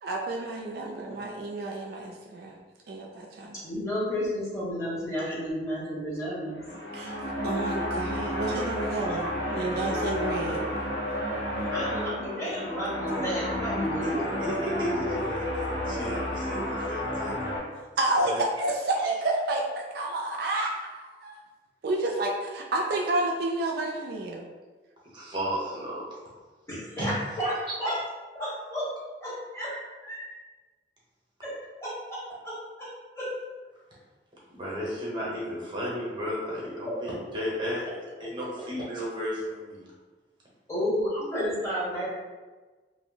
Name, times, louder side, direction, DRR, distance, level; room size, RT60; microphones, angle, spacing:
voice 1, 0.0-2.6 2.9-3.6 6.9-7.2 7.4-10.6 18.0-21.3 21.8-24.5, right 2 dB, 60° right, -1 dB, 0.3 m, -30 dB
voice 2, 3.6-6.6 11.7-15.1 26.7-28.0 28.3-28.9 29.2-29.7 30.0-30.2 31.4-32.5 32.8-33.3 36.9-37.0 40.7-42.1, equal, 15° left, -8 dB, 0.9 m, -32 dB
sound 1, 6.5-17.6, left 1 dB, 75° left, 0.7 m, -31 dB
voice 3, 14.4-17.3 18.2-18.4 25.1-26.2 27.0-27.1 34.5-39.9, equal, 25° right, -5 dB, 0.8 m, -33 dB
2.5 x 2.0 x 3.7 m, 1.3 s
head